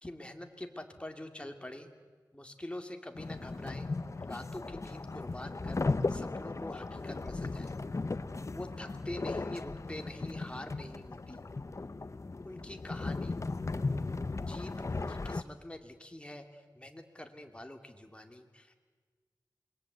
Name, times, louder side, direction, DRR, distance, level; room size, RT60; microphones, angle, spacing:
voice 1, 0.0-1.9 2.3-3.9 4.3-5.8 6.1-7.7 8.5-11.4 12.4-13.4 14.5-18.8, left 1 dB, 15° left, 5 dB, 2.5 m, -45 dB
sound 1, 3.1-15.4, left 3 dB, 40° left, 0.9 m, -36 dB
27.0 x 22.0 x 8.1 m, 1.5 s
wide cardioid pair, 75°, 7 cm